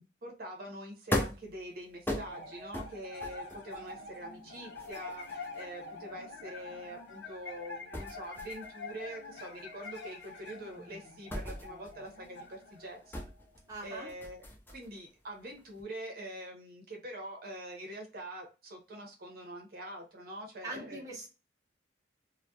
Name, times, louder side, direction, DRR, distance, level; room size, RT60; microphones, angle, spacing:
voice 1, 0.0-13.3 13.8-14.4 14.7-21.0, right 1 dB, 55° right, 2 dB, 0.7 m, -44 dB
sound 1, 1.1-7.6 7.9-15.1 15.4-15.8, left 1 dB, 10° left, 0.3 m, -40 dB
sound 2, 2.2-13.8, left 3 dB, 60° left, 0.7 m, -46 dB
voice 2, 13.7-14.1 20.6-21.3, right 2 dB, 20° right, -3 dB, 0.7 m, -42 dB
2.2 x 2.2 x 2.6 m, 0.31 s
head